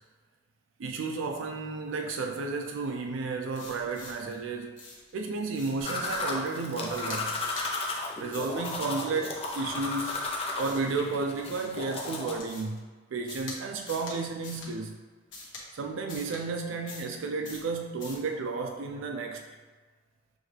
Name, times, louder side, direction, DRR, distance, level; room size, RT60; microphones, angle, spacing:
voice 1, 0.8-4.8 5.1-7.4 8.2-10.2 10.6-12.8 13.1-14.9 15.7-19.4, right 3 dB, 80° right, 3 dB, 0.4 m, -32 dB
sound 1, 3.5-4.3 4.8-5.1 5.5-6.4 6.8-7.7 8.3-8.9 9.4-10.9 11.4-12.8 13.3-13.6 13.8-14.2 14.4-14.7 15.3-15.6 16.1-16.4 16.9-17.2 17.4-17.7 18.0-18.3, left 3 dB, 70° left, 1.1 m, -45 dB
sound 2, 5.8-12.4, left 2 dB, 30° left, 0.5 m, -34 dB
6.2 x 2.3 x 3.2 m, 1.4 s
head